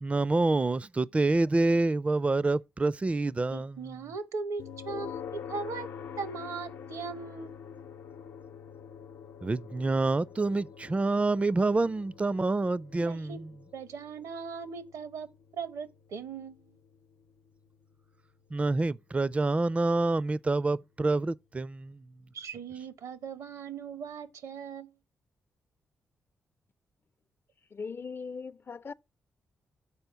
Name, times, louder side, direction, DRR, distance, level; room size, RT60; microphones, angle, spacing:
voice 1, 0.0-4.0 9.4-13.5 18.5-22.0, right 2 dB, 25° right, 0.4 m, -27 dB
voice 2, 3.5-7.7 13.0-13.4 13.7-15.3 15.5-16.7 22.3-24.9, right 5 dB, 80° right, 0.9 m, -39 dB
sound 1, 4.6-19.5, left 7 dB, 85° left, 0.8 m, -46 dB
voice 3, 27.7-28.9, left 5 dB, 40° left, 0.5 m, -39 dB
7.0 x 4.3 x 6.7 m
supercardioid pair, 45°, 6 cm